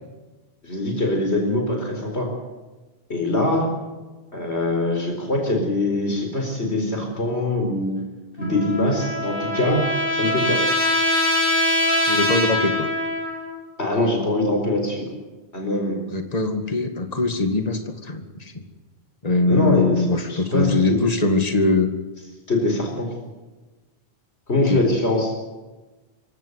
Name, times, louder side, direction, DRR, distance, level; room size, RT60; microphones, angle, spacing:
voice 1, 0.6-2.3 3.1-3.7 4.3-7.9 8.4-9.9 10.1-10.6 13.8-15.1 15.5-16.0 19.5-21.0 22.5-23.1 24.5-25.4, left 1 dB, 90° left, 2 dB, 4.7 m, -23 dB
Trumpet, 8.4-13.5, left 1 dB, 55° left, 8.3 m, -23 dB
voice 2, 12.1-12.9 16.1-18.5 19.2-21.9 24.7-24.8, left 3 dB, 35° left, 6 dB, 2.2 m, -22 dB
26.5 x 16.5 x 8.2 m, 1.2 s
omnidirectional pair, 1.1 m